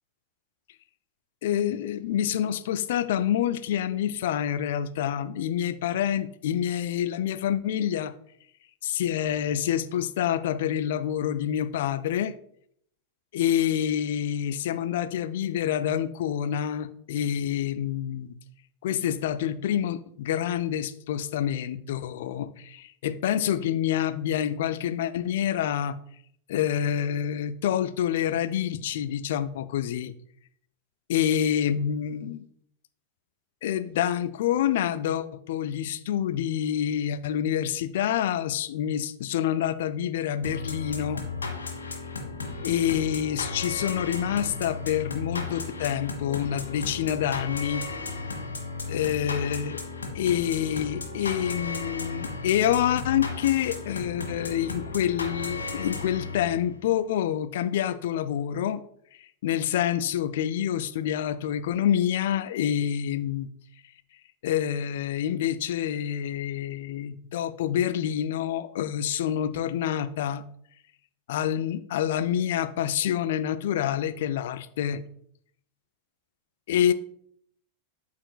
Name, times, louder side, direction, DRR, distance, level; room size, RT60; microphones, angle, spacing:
voice 1, 1.4-8.1 8.8-12.4 13.3-18.3 18.8-26.0 26.5-30.1 31.1-32.4 33.6-41.2 42.6-47.8 48.9-49.8 50.1-58.8 59.1-63.5 64.4-70.4 71.3-75.0 76.7-76.9, left 10 dB, 55° left, 0.4 m, -27 dB
sound 1, 40.4-56.7, left 3 dB, 75° left, 1.6 m, -35 dB
12.5 x 4.4 x 2.3 m
figure-of-eight pair, 90°, 0 cm